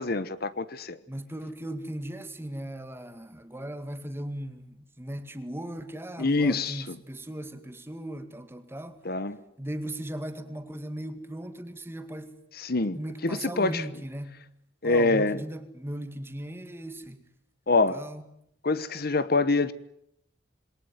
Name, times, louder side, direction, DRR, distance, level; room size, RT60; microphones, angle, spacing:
voice 1, 0.0-1.0 6.2-7.0 9.0-9.4 12.6-13.0 13.2-13.8 14.8-15.4 17.7-18.0 18.6-19.7, left 3 dB, 50° left, 1.1 m, -25 dB
voice 2, 1.1-9.0 9.6-12.3 12.9-14.4 14.8-17.2 17.9-18.3, right 1 dB, 10° right, 2.1 m, -38 dB
27.5 x 21.5 x 9.4 m
head